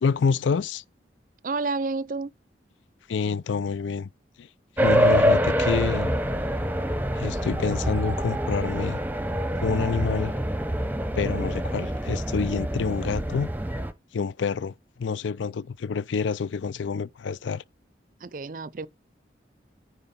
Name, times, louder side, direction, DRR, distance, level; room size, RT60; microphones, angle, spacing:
voice 1, 0.0-0.8 3.1-4.1 4.4-4.5 4.8-6.2 7.1-9.0 9.6-10.3 11.1-13.5 14.1-17.6, left 5 dB, 85° left, 0.4 m, -27 dB
voice 2, 1.4-2.3 18.2-18.9, right 3 dB, 45° right, 0.5 m, -30 dB
sound 1, 4.8-13.9, equal, 10° right, 0.8 m, -25 dB
9.9 x 4.8 x 5.2 m
head